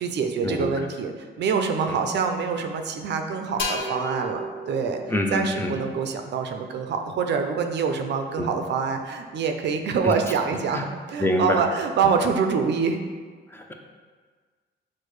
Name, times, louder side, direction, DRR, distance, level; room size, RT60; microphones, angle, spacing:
voice 1, 0.0-13.0, right 5 dB, 60° right, 6 dB, 0.4 m, -26 dB
sound 1, 3.6-7.2, left 1 dB, 65° left, 0.7 m, -35 dB
voice 2, 5.1-5.7 8.4-8.5 10.7-10.8 11.2-11.6 13.5-13.7, left 1 dB, 10° left, 2 dB, 0.4 m, -25 dB
6.3 x 2.1 x 3.1 m, 1.5 s
cardioid pair, 90°, 20 cm